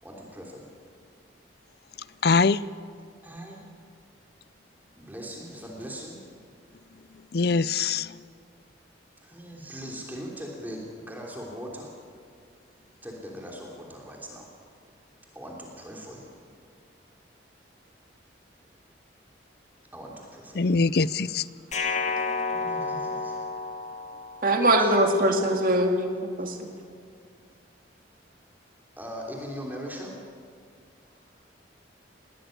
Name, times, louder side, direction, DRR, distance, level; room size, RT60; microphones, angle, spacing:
voice 1, 0.0-0.7 3.2-3.6 5.0-6.2 9.2-11.9 13.0-14.5 15.3-16.3 19.9-20.7 22.5-23.3 24.6-24.9 25.5-27.0 29.0-30.2, equal, 10° right, 3.2 m, -40 dB
voice 2, 2.2-2.6 7.3-8.1 20.5-21.4, left 4 dB, 55° left, 0.5 m, -22 dB
sound 1, 21.7-24.8, left 4 dB, 40° left, 1.3 m, -31 dB
voice 3, 24.4-26.0 26.4-26.6, right 1 dB, 45° right, 2.3 m, -21 dB
20.5 x 17.0 x 8.9 m
head